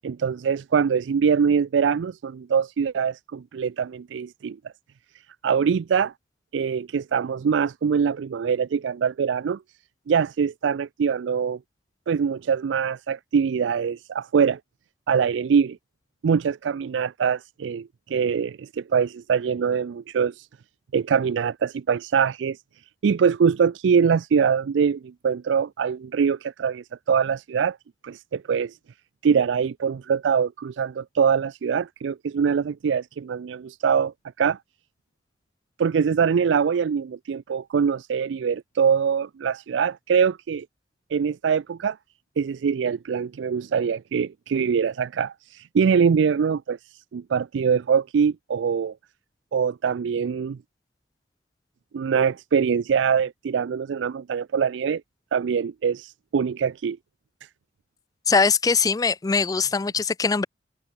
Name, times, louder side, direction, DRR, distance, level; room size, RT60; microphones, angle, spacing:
voice 1, 0.0-4.6 5.4-6.1 6.5-9.6 10.1-11.6 12.1-14.6 15.1-15.8 16.2-20.5 20.9-22.6 23.0-27.8 28.0-28.8 29.2-34.6 35.8-40.7 41.1-42.0 42.4-48.9 49.5-50.6 51.9-55.0 55.3-57.0, right 6 dB, 80° right, 0.4 m, -23 dB
voice 2, 58.3-60.5, left 5 dB, 20° left, 0.3 m, -21 dB
head